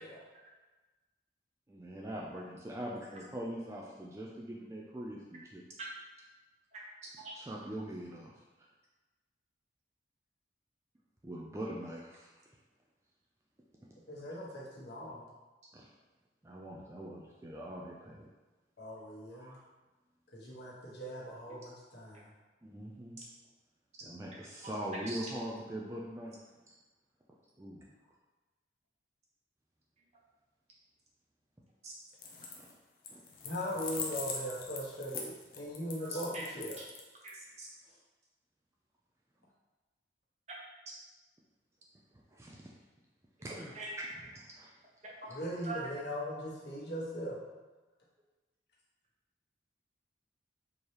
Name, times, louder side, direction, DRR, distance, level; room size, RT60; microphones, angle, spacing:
voice 1, 1.7-5.6 7.4-8.3 11.2-12.3 13.8-13.9 15.7-15.9 16.4-18.3 19.3-19.6 22.6-23.2 24.0-26.3 27.6-27.9 32.5-32.7 33.1-33.2 42.3-42.7 43.4-44.1 44.3-44.7, right 1 dB, 15° right, -3 dB, 0.3 m, -42 dB
voice 2, 14.1-15.2 18.8-19.6 20.3-22.3 33.4-36.8 45.3-47.4, equal, 65° left, -6 dB, 1.2 m, -40 dB
sound 1, 32.1-32.7 33.0-37.3, left 5 dB, 50° left, 0.6 m, -41 dB
voice 3, 36.0-36.5 36.8-36.9 37.2-37.7 43.7-43.9 45.2-45.3 45.6-45.8, right 3 dB, 35° right, -4 dB, 0.8 m, -43 dB
4.4 x 2.9 x 3.2 m, 1.2 s
head